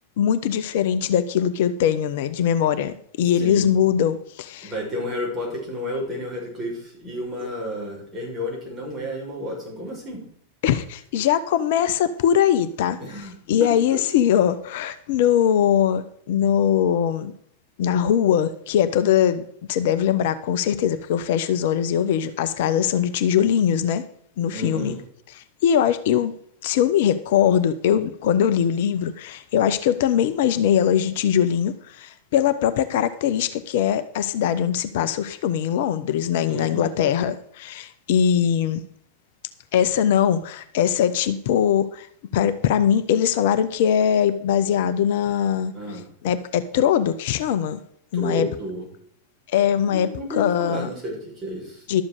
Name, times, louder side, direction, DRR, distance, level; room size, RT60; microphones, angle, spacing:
voice 1, 0.2-4.7 10.6-17.3 17.8-24.0 24.4-24.9 25.6-26.3 26.6-38.8 39.7-42.1 42.3-47.8 48.1-48.5 49.5-50.9 51.9-52.0, left 9 dB, 50° left, 0.7 m, -21 dB
voice 2, 3.4-3.7 4.6-10.2 13.0-13.3 24.5-25.0 36.5-36.9 45.7-46.1 48.1-48.8 49.9-51.8, equal, 20° right, 6.6 m, -31 dB
12.0 x 7.3 x 6.5 m
figure-of-eight pair, 90°, 0 cm